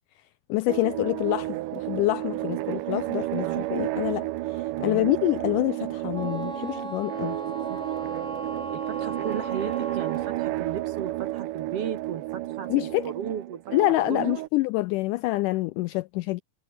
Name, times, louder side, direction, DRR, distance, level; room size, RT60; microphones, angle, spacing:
voice 1, 0.5-7.4 12.7-13.1 13.7-16.4, left 19 dB, 85° left, 1.8 m, -26 dB
sound 1, 0.7-14.5, right 17 dB, 75° right, 2.2 m, -31 dB
voice 2, 4.7-5.1 7.5-8.1 8.7-13.6 14.1-14.4, right 8 dB, 55° right, 1.9 m, -35 dB
Wind instrument woodwind instrument, 6.1-10.4, right 2 dB, 20° right, 3.9 m, -37 dB
omnidirectional pair, 4.2 m